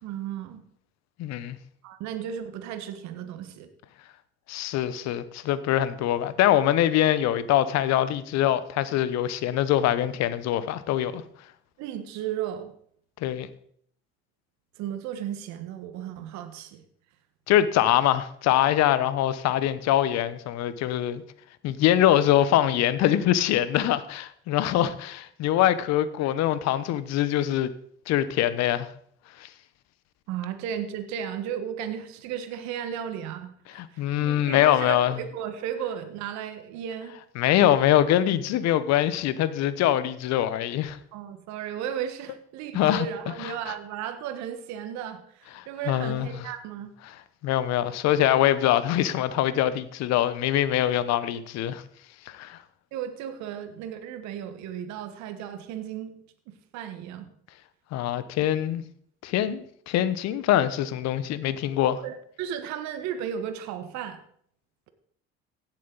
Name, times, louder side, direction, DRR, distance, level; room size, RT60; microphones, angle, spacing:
voice 1, 0.0-0.6 1.8-3.7 11.8-12.7 14.8-16.8 30.3-37.2 38.7-38.8 41.1-46.9 52.9-56.1 56.5-57.3 62.0-64.2, right 9 dB, 70° right, 1.5 m, -35 dB
voice 2, 1.2-1.6 4.5-11.2 13.2-13.5 17.5-21.2 21.6-27.7 28.1-28.9 29.4-29.5 33.7-35.2 37.4-41.0 42.7-43.1 43.4-43.7 45.9-46.4 47.4-51.8 52.3-52.6 57.9-58.8 59.2-62.0, left 12 dB, 65° left, 1.0 m, -23 dB
16.0 x 7.5 x 4.0 m
hypercardioid pair, 60°, 29 cm